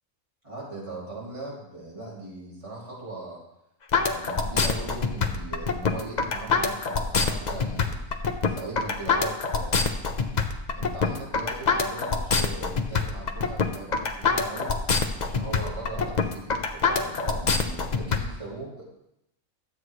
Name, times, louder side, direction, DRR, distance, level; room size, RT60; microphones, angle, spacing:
voice 1, 0.4-3.4 4.0-9.9 10.7-14.7 15.2-18.8, right 2 dB, 20° right, -6 dB, 3.0 m, -39 dB
sound 1, 3.9-18.2, left 5 dB, 40° left, 0.7 m, -25 dB
13.0 x 8.1 x 3.2 m, 0.83 s
omnidirectional pair, 1.5 m